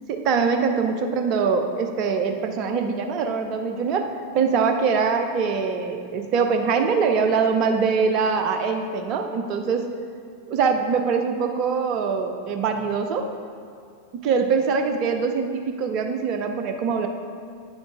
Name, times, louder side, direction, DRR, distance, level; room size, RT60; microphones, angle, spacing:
voice 1, 0.1-9.9 10.5-13.3 14.1-17.1, right 5 dB, 40° right, 5 dB, 0.7 m, -23 dB
9.5 x 6.3 x 3.6 m, 2.3 s
figure-of-eight pair, 90°, 0 cm